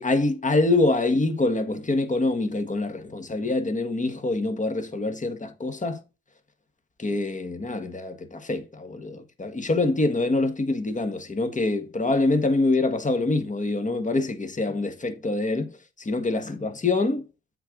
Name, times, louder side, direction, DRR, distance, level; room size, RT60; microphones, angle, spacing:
voice 1, 0.0-6.0 7.0-17.3, left 2 dB, 25° left, 1.6 m, -25 dB
7.9 x 4.0 x 5.2 m
cardioid pair, 90°, 30 cm